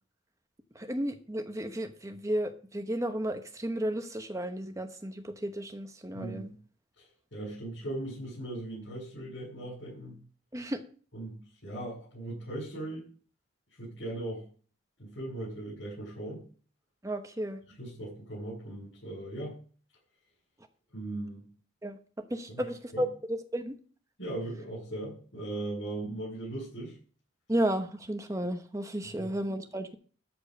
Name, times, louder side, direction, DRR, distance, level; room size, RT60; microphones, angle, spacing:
voice 1, 0.7-6.5 10.5-10.8 17.0-17.6 21.8-23.8 27.5-29.9, right 1 dB, 15° right, 7 dB, 1.0 m, -33 dB
voice 2, 6.1-6.5 7.3-10.2 11.1-13.0 13.8-14.4 15.0-16.4 17.8-19.5 20.9-21.5 22.5-22.6 22.9-23.0 24.2-26.9 29.0-29.3, right 1 dB, 75° left, -8 dB, 7.0 m, -38 dB
13.5 x 4.7 x 6.5 m, 0.42 s
head